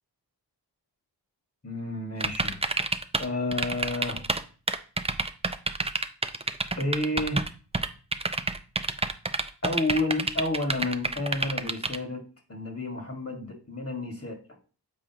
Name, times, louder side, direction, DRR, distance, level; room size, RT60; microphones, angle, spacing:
voice 1, 1.6-2.6 3.2-4.3 6.8-7.5 9.6-12.2 12.5-14.4, left 2 dB, 35° left, 3 dB, 1.7 m, -30 dB
sound 1, 2.2-3.3 3.5-4.4 4.7-7.5 7.7-12.0, right 3 dB, 15° right, 0.5 m, -28 dB
7.5 x 4.9 x 2.9 m, 0.37 s
wide cardioid pair, 65°, 42 cm